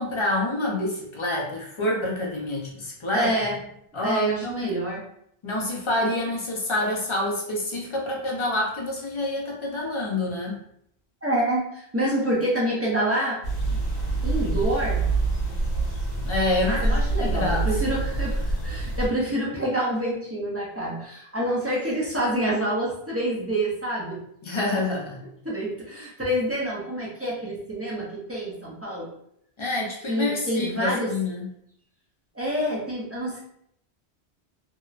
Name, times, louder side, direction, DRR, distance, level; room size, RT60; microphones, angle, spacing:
voice 1, 0.0-3.3 3.9-4.7 5.4-10.6 16.2-18.0 24.4-25.3 29.6-31.5, left 1 dB, 40° left, -2 dB, 0.4 m, -27 dB
voice 2, 3.1-3.6 3.9-5.0 11.2-13.4 14.2-15.1 16.6-24.2 24.5-24.8 25.4-29.1 30.1-31.1 32.3-33.4, right 1 dB, 20° right, -6 dB, 0.4 m, -27 dB
sound 1, 13.4-19.1, right 2 dB, 60° left, 1.1 m, -26 dB
2.8 x 2.0 x 2.4 m, 0.72 s
omnidirectional pair, 1.1 m